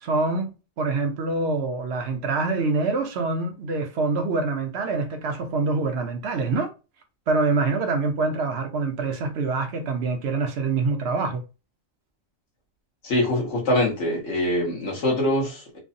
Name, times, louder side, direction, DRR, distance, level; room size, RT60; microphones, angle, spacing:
voice 1, 0.0-6.7 7.3-11.4, right 3 dB, 65° right, 0.7 m, -25 dB
voice 2, 13.0-15.8, left 1 dB, 65° left, 1.4 m, -24 dB
3.2 x 2.0 x 2.6 m
omnidirectional pair, 1.4 m